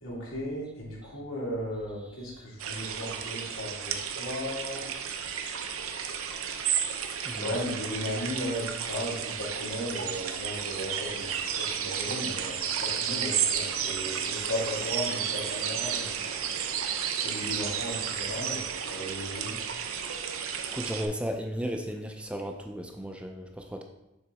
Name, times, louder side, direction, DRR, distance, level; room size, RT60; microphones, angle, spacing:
voice 1, 0.0-4.8 7.4-16.1 17.2-19.6, equal, 85° left, -5 dB, 2.5 m, -36 dB
sound 1, 2.6-21.1, right 8 dB, 85° right, 0.7 m, -32 dB
voice 2, 7.2-7.6 20.7-23.8, equal, 5° right, 4 dB, 0.4 m, -35 dB
6.9 x 3.8 x 4.8 m, 0.91 s
head